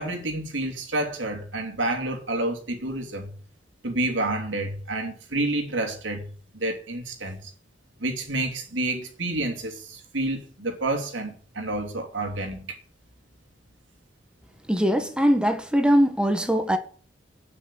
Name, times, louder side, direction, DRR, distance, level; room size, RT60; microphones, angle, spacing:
voice 1, 0.0-3.3 3.8-6.2 6.5-7.5 8.0-12.8, right 2 dB, 85° right, 3.0 m, -29 dB
voice 2, 14.7-16.8, equal, 5° right, 1.3 m, -21 dB
10.5 x 6.1 x 8.4 m
head